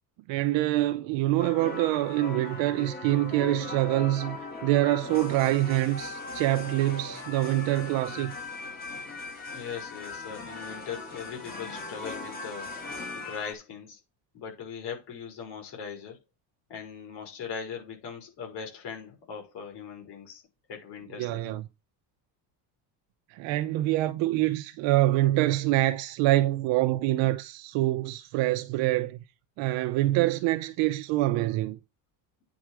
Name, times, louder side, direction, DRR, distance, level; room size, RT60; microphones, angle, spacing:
voice 1, 0.3-8.3 21.2-21.6 23.3-29.2 29.6-31.8, right 16 dB, 70° right, 0.8 m, -25 dB
sound 1, 1.4-13.5, left 3 dB, 20° left, 1.6 m, -39 dB
voice 2, 9.5-12.7 13.1-14.0 14.3-16.2 16.7-20.4 20.7-21.6, left 7 dB, 60° left, 5.7 m, -40 dB
9.3 x 5.0 x 6.2 m
cardioid pair, 180°, 47 cm